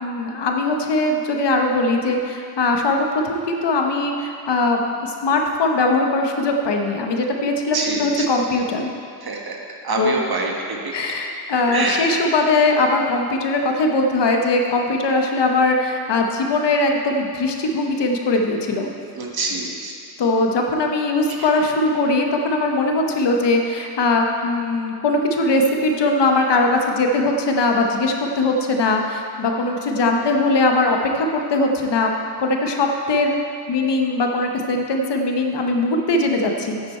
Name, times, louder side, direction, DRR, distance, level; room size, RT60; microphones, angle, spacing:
voice 1, 0.0-8.9 10.0-10.2 10.9-18.9 20.2-32.1 32.4-33.4 33.7-36.8, left 2 dB, 85° left, 2 dB, 1.0 m, -20 dB
voice 2, 7.7-8.3 9.2-9.6 9.8-10.9 11.7-12.0 19.1-19.9 21.3-21.4, right 3 dB, 60° right, 0 dB, 1.5 m, -25 dB
9.1 x 8.7 x 4.4 m, 2.4 s
cardioid pair, 65°, 41 cm